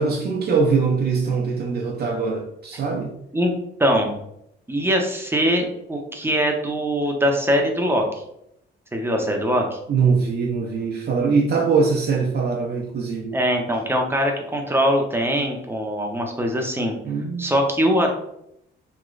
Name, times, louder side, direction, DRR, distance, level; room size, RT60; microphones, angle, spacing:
voice 1, 0.0-3.1 9.9-13.3 17.0-17.5, right 5 dB, 55° right, 1 dB, 0.6 m, -22 dB
voice 2, 3.8-4.2 4.7-8.0 8.9-9.8 13.3-16.9 17.4-18.1, equal, 10° right, 1 dB, 0.6 m, -22 dB
3.1 x 2.9 x 2.5 m, 0.77 s
cardioid pair, 90°, 20 cm